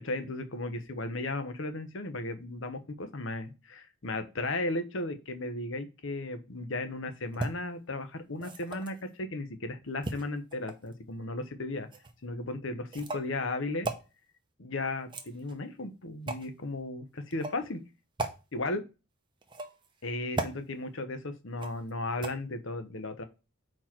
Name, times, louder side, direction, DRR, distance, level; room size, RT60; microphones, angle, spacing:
voice 1, 0.0-11.9 12.2-13.9 14.6-17.8 18.5-18.8 20.0-23.2, left 2 dB, 60° left, 9 dB, 0.9 m, -35 dB
sound 1, 7.3-7.5 8.3-9.0 10.0-10.9 11.9-12.1 12.9-13.3 13.8-14.0 15.0-15.6 16.3-16.5 17.3-17.6 18.2-18.3 19.4-19.9 20.3-20.6 21.6-21.9 22.2-22.3, right 2 dB, 20° right, 0.7 m, -36 dB
4.5 x 4.5 x 5.8 m, 0.29 s
head